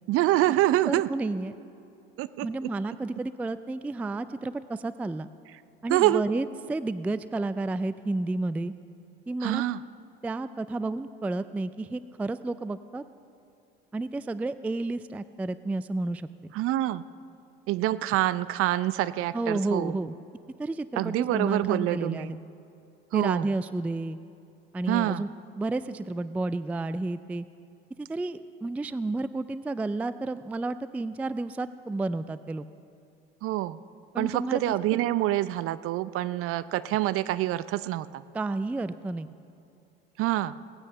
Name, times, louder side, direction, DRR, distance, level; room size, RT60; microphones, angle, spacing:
voice 1, 0.1-1.1 2.2-2.5 5.9-6.2 9.4-9.8 16.5-17.0 17.7-19.9 21.0-22.4 23.1-23.5 24.9-25.3 33.4-33.8 34.2-38.2 40.2-40.5, right 15 dB, 50° right, 16 dB, 0.6 m, -26 dB
voice 2, 0.8-1.5 2.4-5.3 5.8-8.7 9.3-9.6 10.2-13.0 13.9-16.5 19.3-20.1 20.6-22.4 23.1-24.2 24.7-25.3 25.6-27.5 28.0-32.7 34.1-34.6 38.3-39.3, right 2 dB, 5° right, 14 dB, 0.3 m, -31 dB
18.0 x 9.6 x 6.7 m, 2.6 s
hypercardioid pair, 75°, 30 cm